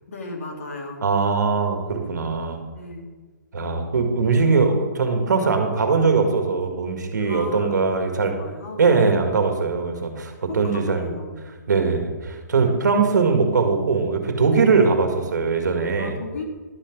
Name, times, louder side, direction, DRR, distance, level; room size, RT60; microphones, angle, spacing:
voice 1, 0.1-1.0 2.7-3.1 4.7-4.9 7.2-8.8 10.5-11.5 16.0-16.4, left 2 dB, 45° left, 2 dB, 2.0 m, -36 dB
voice 2, 1.0-2.6 3.5-8.3 8.8-11.1 11.7-16.2, right 4 dB, 65° right, 5 dB, 1.9 m, -21 dB
11.5 x 5.9 x 6.0 m, 1.4 s
hypercardioid pair, 175°, 10 cm